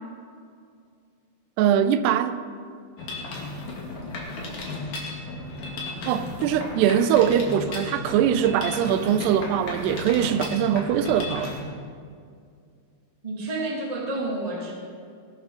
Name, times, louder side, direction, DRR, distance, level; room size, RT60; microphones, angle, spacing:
voice 1, 1.6-2.4 6.1-11.6, right 9 dB, 85° right, 2.7 m, -22 dB
Mechanisms, 3.0-11.6, left 2 dB, 50° left, 3.2 m, -34 dB
voice 2, 5.9-6.5 13.2-14.7, right 2 dB, 15° right, 1.5 m, -31 dB
19.5 x 12.5 x 3.8 m
omnidirectional pair, 4.7 m